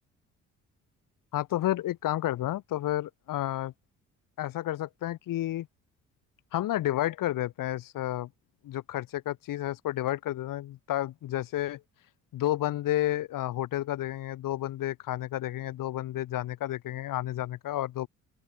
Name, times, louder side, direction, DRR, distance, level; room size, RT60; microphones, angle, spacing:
voice 1, 1.3-3.7 4.4-5.7 6.5-8.3 8.6-11.8 12.3-18.1, left 14 dB, 75° left, 5.4 m, -31 dB
open air
supercardioid pair, 70°, 33 cm